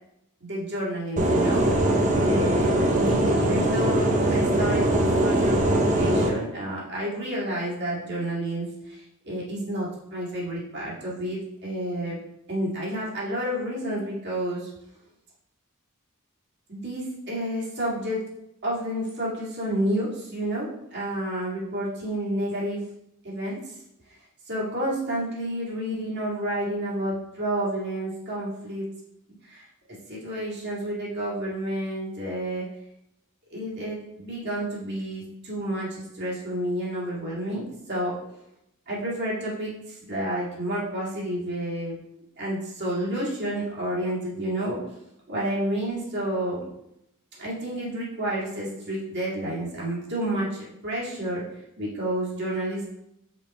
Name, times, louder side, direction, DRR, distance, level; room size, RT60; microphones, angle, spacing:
voice 1, 0.4-12.2 12.5-14.7 16.7-18.2 18.6-22.8 23.2-23.6 24.5-28.9 29.4-32.7 33.5-38.4 38.9-42.0 42.4-44.8 45.3-46.6 47.4-51.4 51.8-52.8, right 1 dB, 50° right, -5 dB, 2.1 m, -30 dB
sound 1, 1.2-6.3, right 1 dB, 35° right, 0.8 m, -21 dB
5.5 x 4.5 x 4.2 m, 0.82 s
head